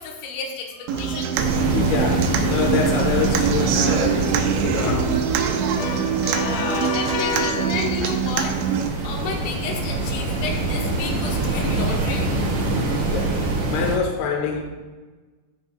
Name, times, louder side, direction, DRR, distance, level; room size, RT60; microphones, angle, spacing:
voice 1, 0.0-1.4 6.2-8.6 9.0-12.3, left 4 dB, 85° left, 0 dB, 3.5 m, -31 dB
Human voice / Acoustic guitar, 0.9-8.9, right 8 dB, 85° right, 2.6 m, -24 dB
sound 1, 1.3-14.0, right 2 dB, 70° right, 1.7 m, -25 dB
voice 2, 1.6-5.2 5.7-7.8 12.9-14.6, left 5 dB, 65° left, 0 dB, 2.8 m, -27 dB
16.5 x 5.9 x 2.3 m, 1.3 s
omnidirectional pair, 5.8 m